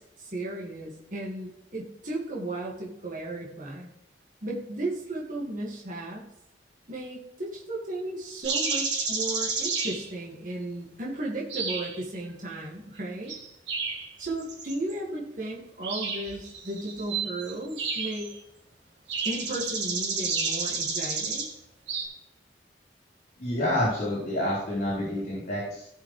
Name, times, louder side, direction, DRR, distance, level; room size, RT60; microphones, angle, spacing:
voice 1, 0.0-3.9 4.4-6.2 6.9-13.3 14.2-18.3 19.2-21.5, right 1 dB, 45° right, -4 dB, 1.8 m, -35 dB
sound 1, 8.4-10.1 11.5-12.2 13.3-14.9 15.8-18.4 19.1-21.5 21.9-22.1, right 4 dB, 80° right, 2.4 m, -31 dB
voice 2, 23.4-25.9, left 1 dB, 50° left, -8 dB, 4.0 m, -28 dB
16.5 x 5.6 x 3.2 m, 0.81 s
head